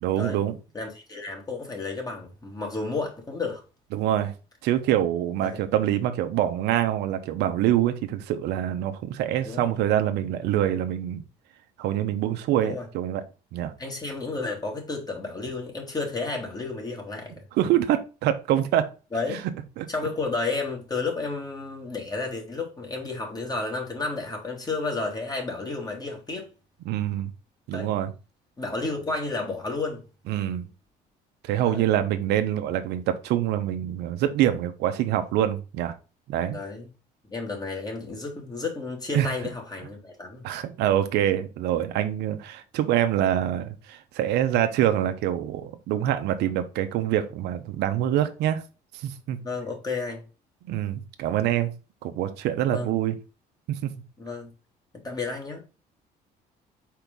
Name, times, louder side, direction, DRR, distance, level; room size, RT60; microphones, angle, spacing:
voice 1, 0.0-0.6 3.9-4.3 4.6-11.2 11.8-13.2 13.5-13.7 17.6-18.9 19.3-19.4 19.8-19.9 26.9-27.3 27.7-28.1 30.3-30.7 31.4-35.9 36.3-36.6 39.1-39.3 40.4-48.6 48.9-49.4 50.7-51.7 52.0-53.2 53.7-53.8, right 11 dB, 85° right, 0.9 m, -25 dB
voice 2, 0.7-3.6 5.4-5.6 9.5-9.7 12.6-12.9 13.8-17.4 19.1-19.4 19.9-26.5 27.7-27.9 28.6-30.0 31.6-31.9 36.4-36.9 37.3-40.4 49.4-50.2 52.6-53.0 54.2-54.5 55.0-55.6, left 3 dB, 25° left, 2.6 m, -32 dB
4.7 x 4.6 x 5.3 m
cardioid pair, 110°, 17 cm